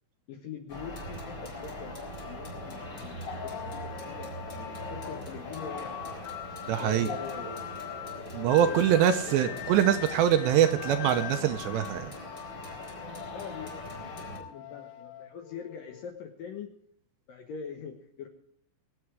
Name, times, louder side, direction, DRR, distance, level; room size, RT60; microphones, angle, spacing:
voice 1, 0.3-4.3 4.7-6.2 6.8-7.6 8.6-9.0 9.2-9.6 13.3-16.7 17.3-18.3, left 6 dB, 70° left, 5 dB, 2.1 m, -43 dB
sound 1, 0.7-14.4, left 2 dB, 25° left, 4.7 m, -40 dB
sound 2, 3.3-16.1, left 11 dB, 90° left, 3.4 m, -43 dB
voice 2, 6.7-7.1 8.3-12.1, right 10 dB, 75° right, 9 dB, 2.6 m, -24 dB
23.0 x 8.7 x 4.7 m, 0.67 s
omnidirectional pair, 5.6 m